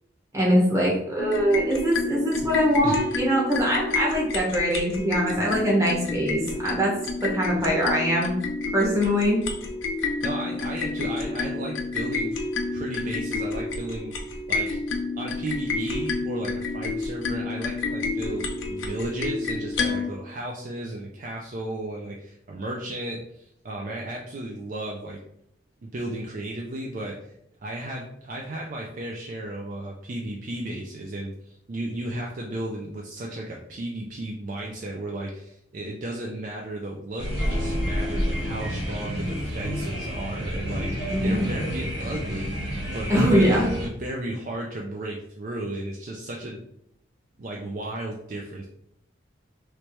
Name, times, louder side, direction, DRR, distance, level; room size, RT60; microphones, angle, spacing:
voice 1, 0.3-8.3 8.7-9.4 41.1-41.5 43.1-43.7, equal, 15° right, -5 dB, 1.0 m, -22 dB
sound 1, 1.2-20.1, left 3 dB, 85° left, 0.6 m, -29 dB
voice 2, 10.2-12.4 12.7-14.7 15.1-25.2 25.8-27.3 27.6-42.6 42.9-46.6 47.4-48.7, right 1 dB, 45° right, -1 dB, 0.4 m, -34 dB
sound 2, 37.2-43.9, equal, 65° right, 1.0 m, -29 dB
3.3 x 3.0 x 3.0 m, 0.75 s
head